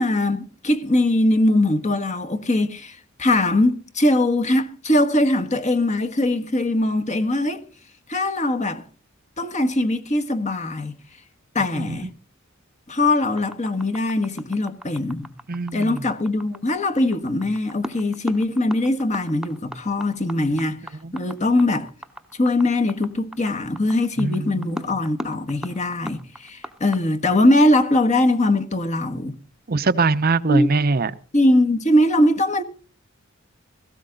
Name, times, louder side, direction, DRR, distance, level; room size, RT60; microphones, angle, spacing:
voice 1, 0.0-7.6 8.1-8.8 9.4-11.0 11.5-12.1 12.9-15.3 15.7-20.8 21.1-21.9 22.4-29.4 30.5-30.7 31.3-32.6, left 1 dB, 35° left, 1.4 m, -21 dB
sound 1, 13.4-27.0, equal, 5° right, 1.0 m, -37 dB
voice 2, 15.5-16.0 21.0-21.1 24.2-24.8 29.7-31.1, right 3 dB, 45° right, 0.7 m, -22 dB
17.5 x 15.5 x 3.9 m
head